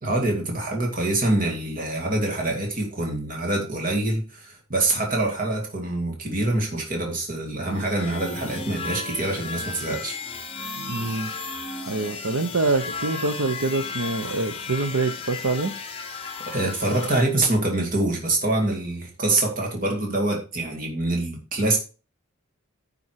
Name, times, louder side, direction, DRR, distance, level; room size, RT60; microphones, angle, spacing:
voice 1, 0.0-10.2 16.5-21.8, right 2 dB, 40° right, 1 dB, 2.4 m, -25 dB
sound 1, 7.7-17.3, left 4 dB, 25° left, 1.1 m, -35 dB
voice 2, 10.8-11.3 11.9-15.7, right 3 dB, 85° right, 7 dB, 0.9 m, -25 dB
9.9 x 5.5 x 4.7 m, 0.33 s
head